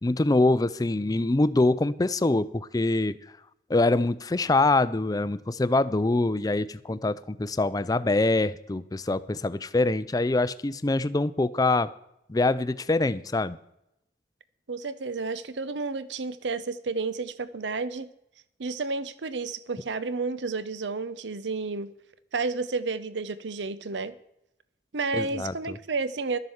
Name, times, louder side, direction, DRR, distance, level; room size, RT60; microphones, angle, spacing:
voice 1, 0.0-3.4 3.7-11.9 12.3-13.6 25.1-25.8, left 2 dB, 20° left, 15 dB, 0.4 m, -24 dB
voice 2, 14.7-18.1 18.6-21.9 22.3-24.1 24.9-26.4, right 4 dB, 80° right, 15 dB, 0.7 m, -31 dB
12.0 x 7.6 x 7.1 m, 0.81 s
head